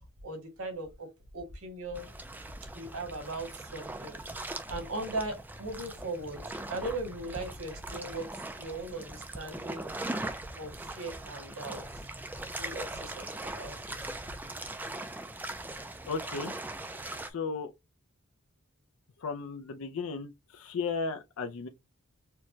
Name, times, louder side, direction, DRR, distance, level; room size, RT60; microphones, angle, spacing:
voice 1, 0.2-1.1 1.3-2.1 2.7-4.2 4.7-9.9 10.5-12.0 12.6-13.7, right 2 dB, 75° right, 1.5 m, -39 dB
sound 1, 1.9-17.3, right 2 dB, 10° right, 0.3 m, -40 dB
voice 2, 16.1-16.5 17.3-17.7 19.2-21.7, left 4 dB, 70° left, 0.5 m, -35 dB
4.5 x 2.2 x 2.7 m
head